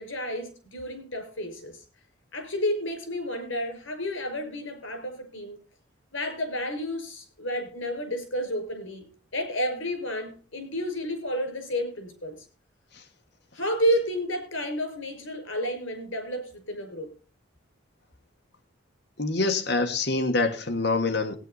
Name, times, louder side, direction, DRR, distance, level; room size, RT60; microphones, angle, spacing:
voice 1, 0.0-1.8 2.3-5.6 6.1-12.5 13.5-17.1, equal, 75° left, 5.5 m, -31 dB
voice 2, 19.2-21.4, left 3 dB, 55° left, 1.6 m, -25 dB
17.0 x 9.5 x 4.1 m
head